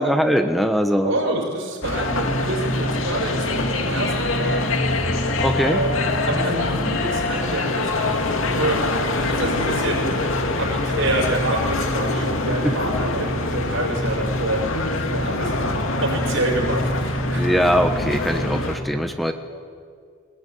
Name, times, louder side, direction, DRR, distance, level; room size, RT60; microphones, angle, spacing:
voice 1, 0.0-1.1 5.4-5.8 17.4-19.3, equal, ahead, 6 dB, 1.1 m, -21 dB
voice 2, 1.0-4.6 5.6-6.0 6.3-8.8 9.3-10.1 10.5-17.5, right 1 dB, 75° right, 0 dB, 6.5 m, -27 dB
sound 1, 1.8-18.8, left 2 dB, 85° left, 2.4 m, -24 dB
23.0 x 20.0 x 9.3 m, 2.2 s
head